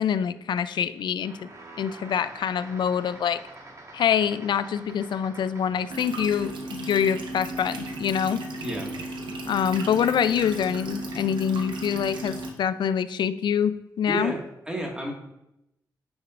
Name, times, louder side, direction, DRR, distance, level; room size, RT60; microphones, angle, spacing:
voice 1, 0.0-1.5 1.8-3.4 3.9-8.4 9.5-14.3, left 8 dB, 75° left, 14 dB, 0.4 m, -25 dB
sound 1, 1.2-6.2, right 2 dB, 45° right, 1.5 m, -46 dB
sound 2, 5.9-12.5, right 1 dB, 85° right, 0.9 m, -35 dB
voice 2, 8.6-8.9 14.1-14.4 14.7-15.1, right 1 dB, 10° right, 0 dB, 1.8 m, -30 dB
9.2 x 6.1 x 2.5 m, 0.88 s
cardioid pair, 60°, 8 cm